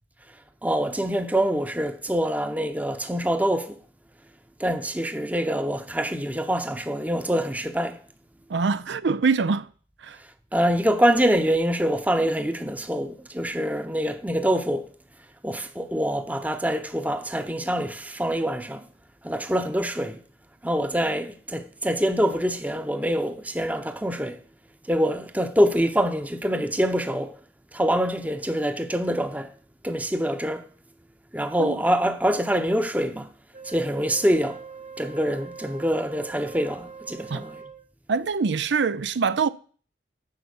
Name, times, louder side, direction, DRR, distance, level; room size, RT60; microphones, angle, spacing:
voice 1, 0.6-3.8 4.6-8.0 10.2-14.9 15.4-18.9 19.2-20.2 20.6-24.4 24.8-27.4 27.7-29.5 29.8-30.7 31.3-33.3 33.6-34.6 35.0-37.6, equal, 10° right, 0.8 m, -25 dB
voice 2, 8.5-9.7 10.0-10.2 31.6-31.8 37.3-37.4 38.1-39.5, right 5 dB, 75° right, 0.5 m, -24 dB
Wind instrument woodwind instrument, 33.5-37.9, right 5 dB, 45° right, 1.7 m, -42 dB
10.5 x 7.0 x 7.1 m
head